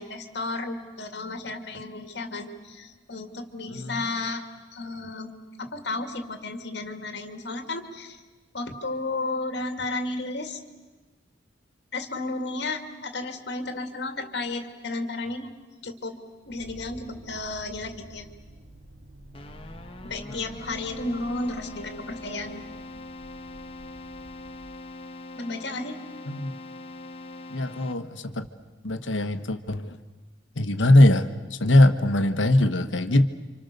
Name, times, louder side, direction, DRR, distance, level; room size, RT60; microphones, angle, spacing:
voice 1, 0.0-4.4 4.7-5.3 5.6-8.2 8.5-10.6 11.9-15.5 15.8-16.2 16.5-18.3 20.0-22.6 25.3-26.0, left 2 dB, 60° left, 6 dB, 2.4 m, -33 dB
voice 2, 3.7-4.0 20.3-20.5 26.3-26.5 27.5-28.5 28.8-30.0 30.6-33.3, left 1 dB, 80° left, 9 dB, 1.4 m, -21 dB
sound 1, 16.4-24.7, right 1 dB, 70° right, 3.0 m, -48 dB
Keyboard (musical), 19.3-28.3, left 2 dB, 30° left, 1.3 m, -42 dB
30.0 x 26.0 x 6.8 m, 1.3 s
head